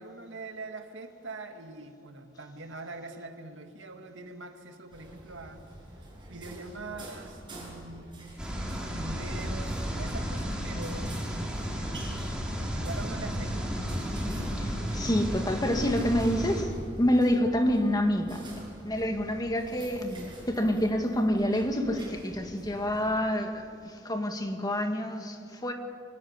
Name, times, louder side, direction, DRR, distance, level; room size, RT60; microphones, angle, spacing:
voice 1, 0.0-5.6 6.3-8.2 8.9-11.2 11.7-12.5 12.7-13.7, right 2 dB, 85° right, 1.9 m, -43 dB
sound 1, 4.9-23.2, right 1 dB, 25° right, 7.2 m, -47 dB
sound 2, 8.4-16.6, equal, 5° right, 4.0 m, -33 dB
voice 2, 14.6-18.5 18.8-25.7, equal, 20° left, 1.8 m, -28 dB
24.5 x 16.0 x 9.6 m
head